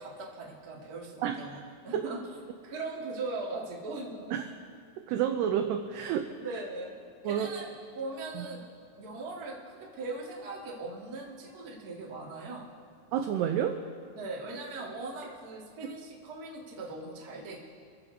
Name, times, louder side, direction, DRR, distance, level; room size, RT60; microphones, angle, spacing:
voice 1, 0.0-1.6 1.8-2.2 2.6-4.3 6.4-6.9 7.2-8.6 9.0-12.7 14.2-17.6, right 3 dB, 55° right, -4 dB, 1.0 m, -39 dB
voice 2, 1.2-2.1 4.3-4.4 5.0-6.3 7.2-7.5 8.4-8.5 13.1-13.8 15.8-15.9, right 9 dB, 85° right, 5 dB, 2.4 m, -30 dB
27.5 x 14.5 x 2.8 m, 2.2 s
omnidirectional pair, 5.5 m